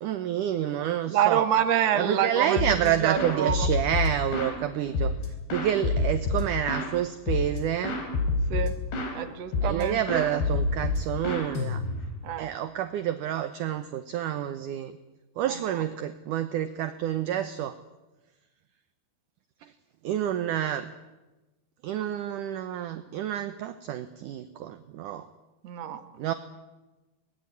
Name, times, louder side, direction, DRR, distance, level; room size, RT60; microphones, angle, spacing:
voice 1, 0.0-1.5 1.9-5.1 5.5-8.0 9.6-11.8 12.4-15.0 15.4-17.8 19.6-19.7 20.0-20.9 21.8-25.3 26.2-26.3, right 10 dB, 70° right, 10 dB, 2.0 m, -29 dB
voice 2, 1.1-3.7 8.5-8.7 9.1-10.2 12.2-12.5 25.6-26.0, right 9 dB, 55° right, 8 dB, 2.1 m, -26 dB
sound 1, 2.6-2.9 3.2-4.6 4.9-6.9 7.3-7.6 7.8-9.2 9.5-9.8 10.1-12.2, left 3 dB, 75° left, 6.1 m, -27 dB
24.0 x 20.5 x 9.8 m, 1.1 s
omnidirectional pair, 4.8 m